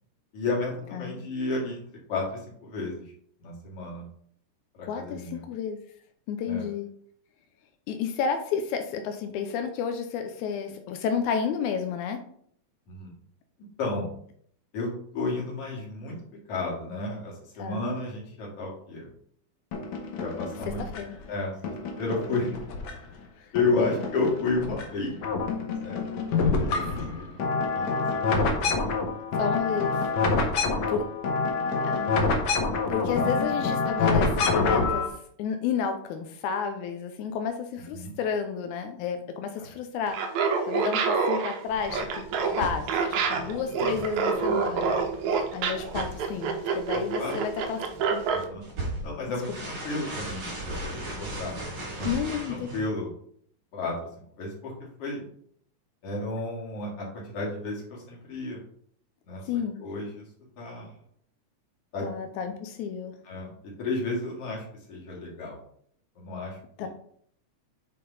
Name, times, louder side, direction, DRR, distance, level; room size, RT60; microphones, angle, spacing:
voice 1, 0.3-3.0 3.4-4.1 4.7-5.4 6.5-6.7 12.9-13.1 13.8-14.1 14.7-16.2 16.5-19.1 20.2-20.8 21.3-22.6 23.5-25.1 25.8-26.9 27.1-27.4 27.7-28.8 30.3-30.4 30.7-30.8 33.1-33.3 37.9-38.1 39.6-39.7 43.8-43.9 46.9-47.3 48.3-48.6 49.0-51.5 52.0-52.1 52.5-53.1 53.7-54.1 54.4-54.7 55.0-55.3 56.0-58.6 59.3-59.5 59.8-60.2 60.6-60.9 61.9-62.1 63.2-65.6 66.2-66.9, left 3 dB, 50° left, -3 dB, 2.9 m, -32 dB
voice 2, 4.8-5.8 6.3-6.9 7.9-12.2 17.6-17.9 21.0-21.2 23.4-23.5 23.8-23.9 29.4-30.1 30.9-31.1 31.8-32.2 32.9-35.1 35.4-40.2 40.7-45.0 45.5-47.8 48.1-48.2 52.1-52.7 59.5-59.8 62.0-63.2 66.8-66.9, left 7 dB, 90° left, 6 dB, 2.1 m, -31 dB
sound 1, 19.7-21.2 21.6-23.2 23.5-24.8 25.1-35.1, left 4 dB, 70° left, 1.2 m, -27 dB
Laughter, 40.1-48.4, right 5 dB, 80° right, 2.2 m, -27 dB
sound 2, 41.7-52.8, right 1 dB, 55° right, 3.1 m, -39 dB
7.4 x 4.2 x 4.0 m, 0.63 s
omnidirectional pair, 3.4 m